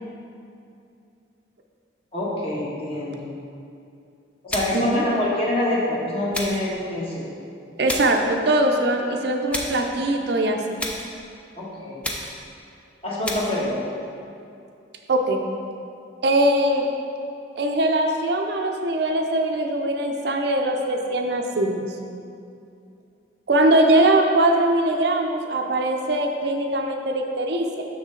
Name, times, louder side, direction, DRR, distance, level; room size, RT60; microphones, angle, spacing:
voice 1, 2.1-3.3 4.4-7.3 11.6-12.0 13.0-13.8, left 1 dB, 30° left, -6 dB, 1.3 m, -25 dB
sound 1, 4.5-4.9 6.3-6.7 7.9-8.2 9.5-9.9 10.8-11.2 12.0-12.5 13.2-13.6, left 1 dB, 5° left, 0.4 m, -31 dB
voice 2, 4.7-5.0 7.8-10.8 15.1-15.4 16.2-16.9 17.6-21.9 23.5-27.8, right 1 dB, 55° right, 3 dB, 0.5 m, -21 dB
6.4 x 6.3 x 3.8 m, 2.5 s
head